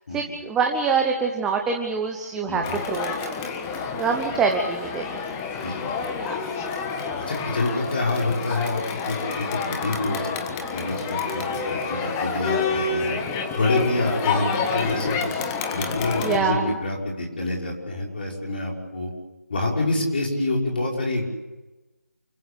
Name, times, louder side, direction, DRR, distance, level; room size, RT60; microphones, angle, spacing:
voice 1, 0.1-3.3 4.0-5.2 6.2-6.4 16.2-16.8, right 5 dB, 5° right, 3 dB, 0.9 m, -25 dB
voice 2, 2.5-2.8 3.9-4.0 5.6-5.9 6.3-6.4 7.3-8.8 9.1-10.3 10.7-13.2 13.5-14.5 14.7-15.2 15.7-19.1 19.5-21.3, left 2 dB, 35° left, -1 dB, 5.8 m, -27 dB
Crowd, 2.6-16.4, left 5 dB, 10° left, 1.4 m, -28 dB
29.0 x 15.5 x 8.5 m, 1.1 s
figure-of-eight pair, 160°, 9 cm